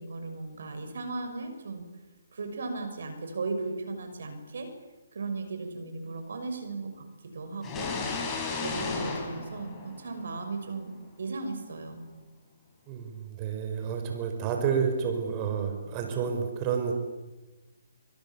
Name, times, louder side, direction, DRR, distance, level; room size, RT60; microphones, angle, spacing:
voice 1, 0.0-1.9 2.3-4.7 5.1-8.3 8.6-12.0, right 3 dB, 65° right, 7 dB, 6.2 m, -36 dB
sound 1, 7.6-10.4, left 4 dB, 15° left, 6.5 m, -34 dB
voice 2, 12.9-16.9, right 7 dB, 25° right, 4 dB, 5.5 m, -30 dB
28.5 x 25.5 x 7.3 m, 1.1 s
figure-of-eight pair, 140°, 0 cm